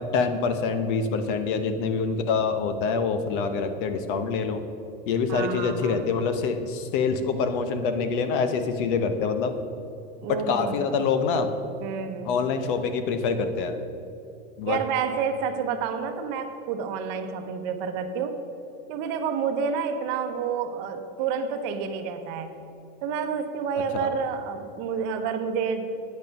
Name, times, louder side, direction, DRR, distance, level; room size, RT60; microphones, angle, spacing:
voice 1, 0.1-4.6 5.1-9.5 10.3-11.5 12.2-13.7 14.6-14.8 23.9-24.1, left 5 dB, 55° left, 9 dB, 0.9 m, -25 dB
voice 2, 5.3-6.1 10.2-10.8 11.8-12.3 14.6-18.4 18.9-22.5 23.0-26.0, right 6 dB, 50° right, 7 dB, 0.9 m, -29 dB
9.2 x 8.2 x 5.3 m, 2.8 s
supercardioid pair, 155°, 30 cm